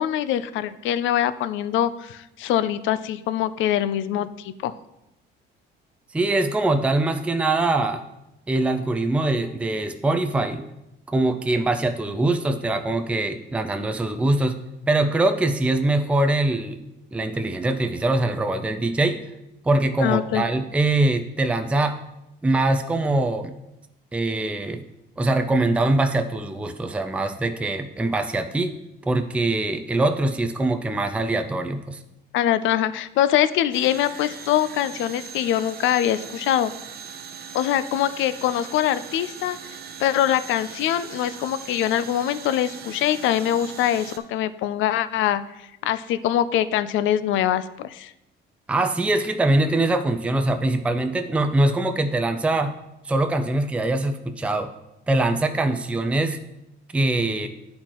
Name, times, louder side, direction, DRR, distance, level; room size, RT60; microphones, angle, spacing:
voice 1, 0.0-4.7 20.0-20.5 32.3-36.7 37.5-39.6 40.0-45.4 45.8-48.1, left 11 dB, 70° left, 14 dB, 0.4 m, -23 dB
voice 2, 6.1-8.0 8.5-10.6 11.1-14.6 14.9-16.8 17.1-19.2 19.6-22.0 22.4-23.5 24.1-24.8 25.2-28.8 29.1-32.0 48.7-52.7 53.0-54.7 55.1-56.4 56.9-57.5, right 2 dB, 5° right, 6 dB, 0.4 m, -23 dB
sound 1, 33.7-44.2, right 7 dB, 50° right, 0.7 m, -40 dB
10.0 x 4.3 x 3.0 m, 0.88 s
cardioid pair, 105°, 21 cm